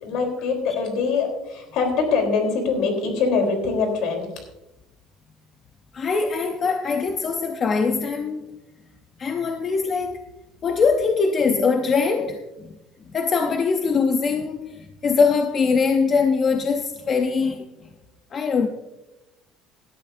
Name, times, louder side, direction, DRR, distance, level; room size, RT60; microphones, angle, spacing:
voice 1, 0.0-4.3, left 4 dB, 60° left, 3.5 m, -23 dB
voice 2, 5.9-8.4 9.2-10.2 10.6-12.7 13.1-17.6 18.3-18.7, left 5 dB, 25° left, 0.7 m, -22 dB
17.5 x 12.5 x 2.6 m
cardioid pair, 180°, 0 cm